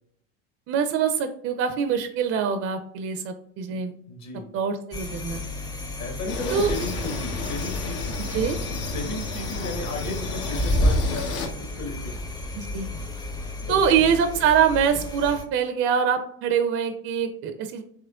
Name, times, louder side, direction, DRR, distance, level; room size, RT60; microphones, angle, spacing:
voice 1, 0.7-3.9 4.5-5.4 6.5-6.7 8.3-8.6 12.6-12.9 13.7-17.8, right 7 dB, 40° right, 8 dB, 0.4 m, -24 dB
voice 2, 4.1-4.5 6.0-8.6 8.9-12.2 13.6-14.1, left 2 dB, 50° left, 4 dB, 1.2 m, -35 dB
sound 1, 4.9-15.4, left 1 dB, 10° left, 0.5 m, -30 dB
sound 2, 6.3-11.5, left 3 dB, 75° left, 0.8 m, -33 dB
3.6 x 3.0 x 2.3 m, 0.68 s
hypercardioid pair, 85°, 34 cm